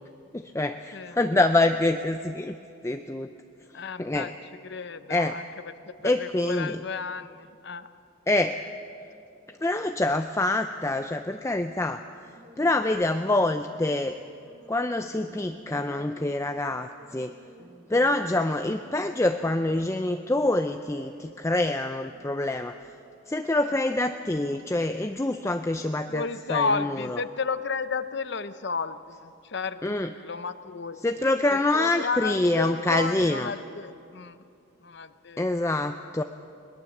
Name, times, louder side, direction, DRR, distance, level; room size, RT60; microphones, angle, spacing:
voice 1, 0.3-2.6 2.8-3.3 4.0-4.3 5.1-5.4 6.0-6.8 8.3-8.6 9.6-12.0 12.6-14.2 14.7-17.4 17.9-22.8 23.3-26.2 26.5-27.2 29.8-30.1 31.0-33.5 35.4-36.2, left 2 dB, 15° left, 7 dB, 0.4 m, -26 dB
voice 2, 3.7-7.9 26.1-31.1 31.5-34.4 34.8-35.4, left 5 dB, 55° left, 13 dB, 0.7 m, -33 dB
sound 1, 12.2-22.6, right 1 dB, 60° right, 6.0 m, -53 dB
21.5 x 20.0 x 7.2 m, 2.5 s
head